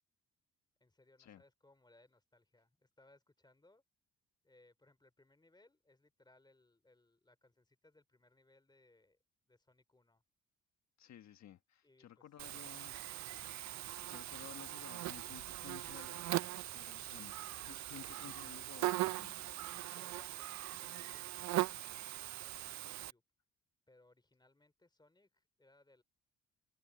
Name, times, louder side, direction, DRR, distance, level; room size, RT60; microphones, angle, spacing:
voice 1, 0.8-3.8 4.4-9.2 9.5-10.2 11.8-12.2 13.2-13.4 19.9-22.0 22.3-23.2 23.9-26.0, left 2 dB, 15° left, 3.2 m, -68 dB
voice 2, 11.0-13.3 14.0-16.3 16.7-19.4, left 10 dB, 65° left, 1.5 m, -55 dB
Buzz, 12.4-23.1, right 16 dB, 65° right, 0.5 m, -40 dB
cardioid pair, 90°, 30 cm